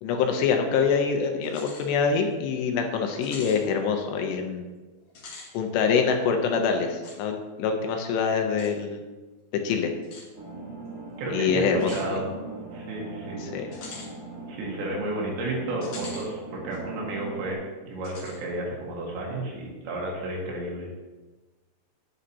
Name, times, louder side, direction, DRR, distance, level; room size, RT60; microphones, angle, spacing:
voice 1, 0.0-4.7 5.5-9.0 9.6-9.9 11.3-12.1 13.4-13.7, left 6 dB, 75° left, 4 dB, 2.9 m, -25 dB
sound 1, 1.4-1.9 2.3-2.4 3.2-3.6 5.1-5.5 7.0-7.2 8.6-8.7 10.0-10.3 11.8-12.1 13.7-14.1 15.8-16.3 16.7-16.8 18.0-18.4, left 3 dB, 55° left, 2.1 m, -43 dB
sound 2, 10.3-17.5, right 2 dB, 30° right, 4.0 m, -40 dB
voice 2, 11.2-12.3 12.7-13.4 14.5-20.9, right 2 dB, 75° right, -2 dB, 4.2 m, -32 dB
11.5 x 9.7 x 2.9 m, 1.2 s
omnidirectional pair, 5.2 m